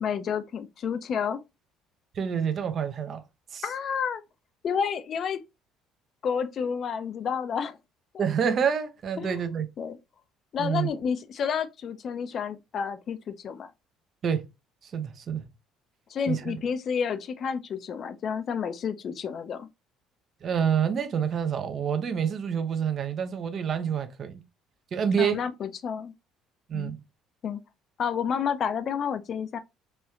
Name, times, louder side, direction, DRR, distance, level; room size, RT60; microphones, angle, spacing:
voice 1, 0.0-1.4 3.6-4.2 4.6-5.4 6.2-7.8 9.2-9.4 9.8-10.0 10.5-13.7 16.1-19.7 25.2-26.1 26.7-26.9 27.4-27.6 28.0-29.6, left 7 dB, 45° left, 0.4 m, -30 dB
voice 2, 2.1-3.2 3.5-3.7 8.2-9.7 10.6-10.9 14.2-14.5 14.8-15.4 16.3-16.6 20.4-24.4 24.9-25.4 26.7-27.0, right 7 dB, 40° right, 0.5 m, -27 dB
3.1 x 3.0 x 2.3 m
figure-of-eight pair, 55°, 0 cm